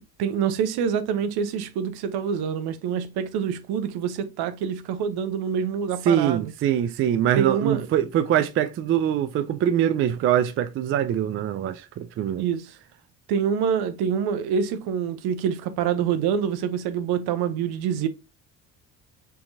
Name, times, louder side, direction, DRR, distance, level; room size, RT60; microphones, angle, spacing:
voice 1, 0.0-6.5 7.4-7.9 12.4-12.8 13.3-18.1, right 7 dB, 55° right, 0.7 m, -26 dB
voice 2, 6.1-12.4, right 10 dB, 30° right, 0.4 m, -23 dB
4.3 x 3.6 x 2.6 m
figure-of-eight pair, 50°, 46 cm